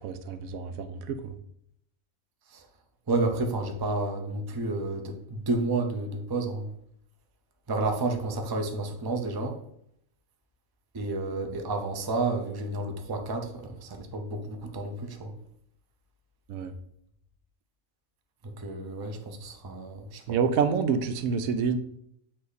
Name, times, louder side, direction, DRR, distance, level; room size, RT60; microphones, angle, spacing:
voice 1, 0.0-1.4 16.5-16.8 20.3-21.8, right 6 dB, 85° right, 10 dB, 1.0 m, -28 dB
voice 2, 3.1-6.7 7.7-9.6 10.9-15.3 18.4-20.2, right 2 dB, 30° right, 4 dB, 0.4 m, -31 dB
8.3 x 2.8 x 4.0 m, 0.71 s
omnidirectional pair, 1.4 m